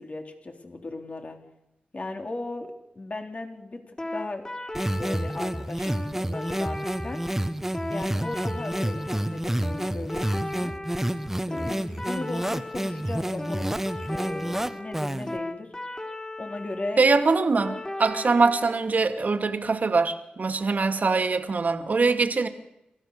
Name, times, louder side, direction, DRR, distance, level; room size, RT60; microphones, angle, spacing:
voice 1, 0.0-1.4 1.9-4.5 4.9-7.3 7.9-10.8 11.5-13.8 14.1-15.7 16.4-17.0 22.0-22.2, left 2 dB, 45° left, 3.5 m, -37 dB
sound 1, 4.0-18.8, left 1 dB, 25° left, 4.9 m, -37 dB
sound 2, 4.7-15.4, right 1 dB, 10° right, 1.3 m, -29 dB
voice 2, 17.0-22.5, right 4 dB, 60° right, 2.3 m, -23 dB
27.0 x 14.5 x 6.7 m
cardioid pair, 50°, 3 cm